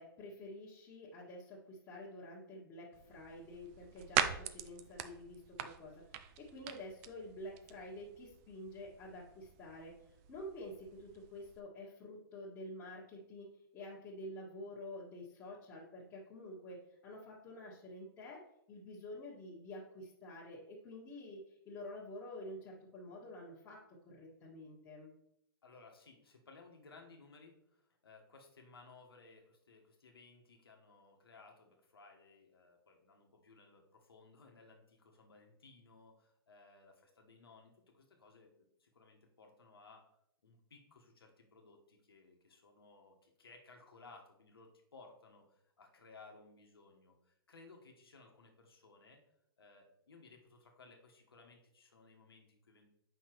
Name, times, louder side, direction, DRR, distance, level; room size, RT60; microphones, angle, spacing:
voice 1, 0.0-9.9 10.3-18.4 18.7-25.1, left 1 dB, 25° left, -8 dB, 1.6 m, -49 dB
sound 1, 2.9-11.6, right 10 dB, 40° right, 0.5 m, -42 dB
voice 2, 25.6-40.1 40.4-49.2 49.6-52.9, left 3 dB, 85° left, 2 dB, 1.3 m, -60 dB
7.5 x 5.6 x 3.0 m, 0.77 s
hypercardioid pair, 120°, 12 cm